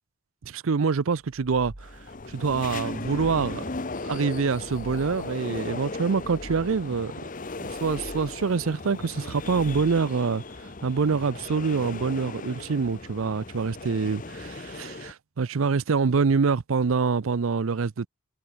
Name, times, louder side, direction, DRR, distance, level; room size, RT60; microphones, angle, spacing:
voice 1, 0.4-1.9 2.3-3.6 4.0-7.1 7.6-18.1, right 5 dB, 80° right, 0.6 m, -26 dB
sound 1, 1.2-2.3 2.7-3.9 4.3-5.4 5.9-7.0 7.5-8.6 9.2-10.3, right 1 dB, 60° right, 2.1 m, -47 dB
sound 2, 1.8-15.1, left 3 dB, 40° left, 0.9 m, -37 dB
head